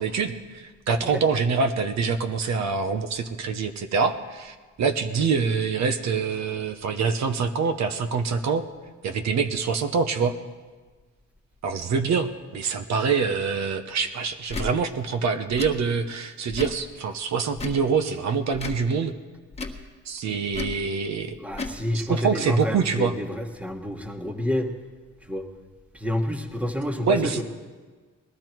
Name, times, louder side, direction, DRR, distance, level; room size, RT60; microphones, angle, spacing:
voice 1, 0.0-8.6 9.0-10.3 11.6-19.1 20.0-21.4 21.9-23.1 27.0-27.4, right 5 dB, 60° right, 8 dB, 1.0 m, -25 dB
Tick / Tick-tock, 14.5-14.7 15.5-15.7 16.5-16.8 17.5-17.8 18.5-18.8 19.5-19.8 20.5-20.8 21.5-21.8, left 3 dB, 20° left, 1.5 m, -33 dB
voice 2, 21.4-24.7 25.3-25.4 25.9-27.4, left 1 dB, 5° right, 5 dB, 1.4 m, -28 dB
19.5 x 12.0 x 4.6 m, 1.4 s
cardioid pair, 90°, 30 cm